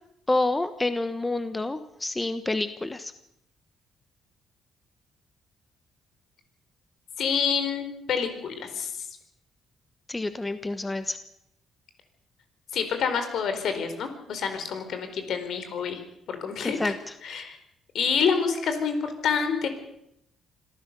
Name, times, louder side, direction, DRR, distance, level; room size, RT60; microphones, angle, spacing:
voice 1, 0.3-3.1 10.1-11.2 16.6-16.9, left 2 dB, 15° left, 11 dB, 1.2 m, -28 dB
voice 2, 7.2-9.1 12.7-16.0 16.3-16.9 17.2-17.6 17.9-19.7, left 6 dB, 70° left, 8 dB, 4.3 m, -27 dB
25.5 x 15.0 x 6.9 m, 0.78 s
cardioid pair, 90°, 0 cm